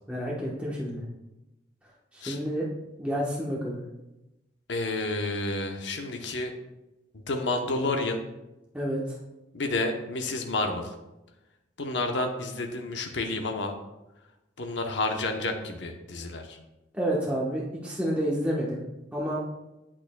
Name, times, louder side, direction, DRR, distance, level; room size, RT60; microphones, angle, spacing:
voice 1, 0.1-1.0 2.1-2.6 3.0-3.8 8.7-9.2 16.9-18.8 19.1-19.4, equal, 5° right, -5 dB, 1.0 m, -29 dB
voice 2, 4.7-6.5 7.1-8.2 9.5-10.9 11.8-13.7 14.6-16.6, left 2 dB, 75° left, 4 dB, 0.8 m, -30 dB
8.6 x 8.2 x 2.2 m, 0.97 s
head